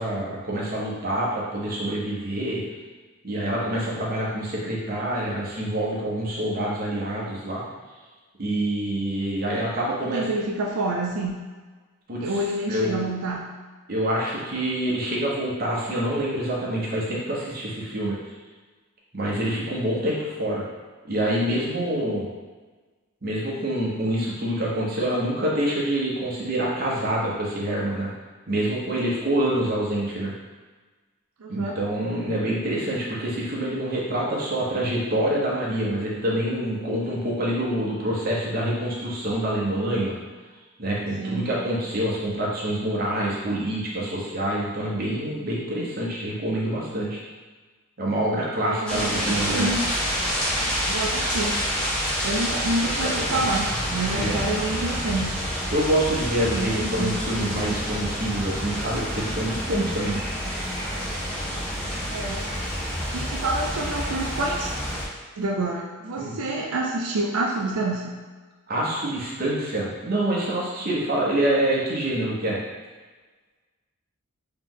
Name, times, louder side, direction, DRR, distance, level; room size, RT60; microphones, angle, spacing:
voice 1, 0.0-2.6 3.2-7.6 8.4-10.3 12.1-12.4 12.7-13.1 13.9-18.2 19.1-20.6 21.0-22.3 23.2-28.1 28.5-30.3 31.5-40.2 40.8-47.2 48.0-49.7 52.5-52.6 53.0-53.4 54.1-54.4 55.7-60.2 66.2-66.4 68.7-72.6, right 1 dB, 45° right, -5 dB, 0.9 m, -26 dB
voice 2, 9.9-11.3 12.2-13.4 31.4-31.8 41.2-41.5 48.6-49.8 50.9-51.6 52.2-55.4 56.5-57.2 62.1-62.5 63.1-64.7 65.4-68.1, right 2 dB, 90° right, -1 dB, 0.5 m, -28 dB
sound 1, 48.9-65.0, equal, 5° left, 0.7 m, -28 dB
3.3 x 3.0 x 3.8 m, 1.3 s
head